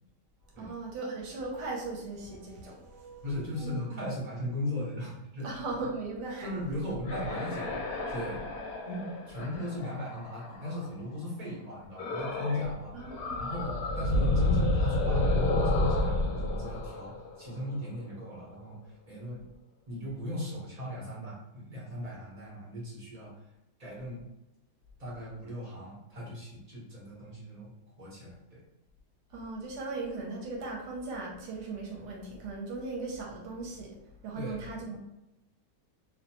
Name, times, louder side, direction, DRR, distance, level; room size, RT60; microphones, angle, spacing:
voice 1, 0.6-4.1 5.4-6.9 12.9-13.5 29.3-34.0 34.2-35.0, right 3 dB, 80° right, -1 dB, 1.2 m, -38 dB
voice 2, 3.2-5.6 6.4-8.5 8.8-13.0 13.4-19.4 19.9-23.4 23.8-24.2 25.0-27.7 28.0-28.6 34.3-34.8, left 1 dB, 30° right, -7 dB, 0.9 m, -37 dB
sound 1, 7.0-10.9 12.0-12.7 13.0-17.9, left 2 dB, 65° left, 1.0 m, -30 dB
2.7 x 2.2 x 2.8 m, 0.93 s
omnidirectional pair, 1.8 m